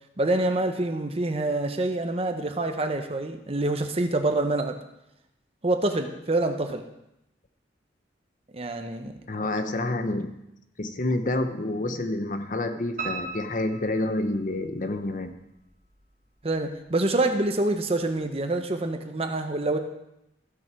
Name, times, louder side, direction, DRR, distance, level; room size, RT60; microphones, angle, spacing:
voice 1, 0.2-4.8 5.6-6.9 8.5-9.2 16.4-19.8, right 2 dB, 35° right, 6 dB, 0.8 m, -26 dB
voice 2, 9.3-10.3 10.8-15.3, left 2 dB, 45° left, 8 dB, 0.8 m, -28 dB
Piano, 13.0-14.9 15.3-16.2 16.5-16.6 17.1-17.2 17.4-17.5, right 3 dB, 50° right, 2.5 m, -37 dB
15.0 x 6.3 x 4.5 m, 0.86 s
head